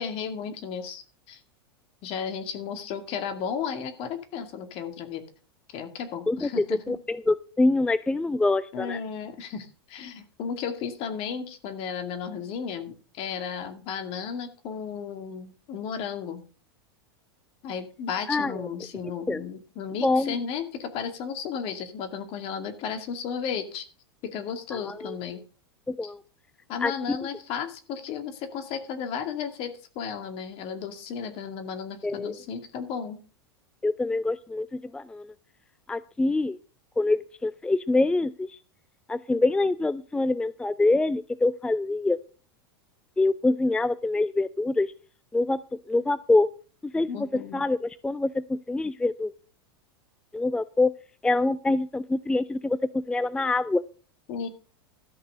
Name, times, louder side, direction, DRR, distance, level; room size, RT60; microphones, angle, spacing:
voice 1, 0.0-1.4 2.0-5.2 5.7-6.9 8.7-16.4 17.6-23.8 24.2-25.4 26.0-26.1 26.7-33.2 47.1-47.6 54.3-54.5, left 7 dB, 50° left, 8 dB, 2.3 m, -34 dB
voice 2, 6.3-9.0 18.3-18.5 19.3-19.4 20.0-20.3 24.7-25.1 25.9-26.2 26.8-27.2 32.0-32.3 33.8-35.3 35.9-36.6 37.0-38.6 39.1-42.2 43.2-44.9 45.3-45.6 45.9-46.5 46.8-49.3 50.3-50.9 51.2-53.8, left 2 dB, 5° left, 16 dB, 0.4 m, -25 dB
13.0 x 6.0 x 6.5 m, 0.38 s
hypercardioid pair, 95°, 13 cm